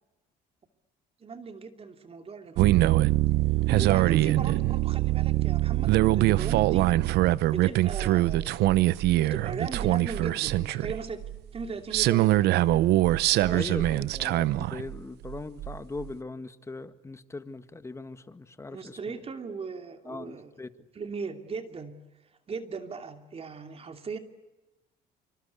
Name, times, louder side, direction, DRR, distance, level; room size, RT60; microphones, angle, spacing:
voice 1, 1.2-2.8 3.5-6.9 7.5-8.8 9.2-11.2 11.5-12.7 13.3-13.9 18.7-20.5 20.9-22.0 22.5-24.2, right 5 dB, 35° right, 7 dB, 2.7 m, -38 dB
sound 1, 2.6-11.7 11.9-15.0 15.2-16.1, right 16 dB, 80° right, 0.8 m, -23 dB
voice 2, 13.5-19.2 20.1-20.9, left 3 dB, 15° left, 11 dB, 1.7 m, -40 dB
26.0 x 25.5 x 8.2 m, 1.0 s
cardioid pair, 110°, 17 cm